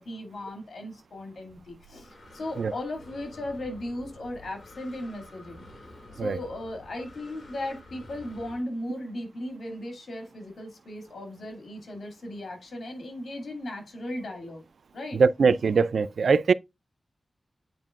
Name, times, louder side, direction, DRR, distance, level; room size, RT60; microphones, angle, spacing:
voice 1, 0.0-5.6 6.1-14.6 14.9-15.2, left 1 dB, 80° left, 2.3 m, -37 dB
Breathing, 1.5-8.6, left 1 dB, 60° left, 3.3 m, -49 dB
voice 2, 15.1-16.5, right 5 dB, 85° right, 0.3 m, -22 dB
9.1 x 4.4 x 2.4 m
wide cardioid pair, 105°, 0 cm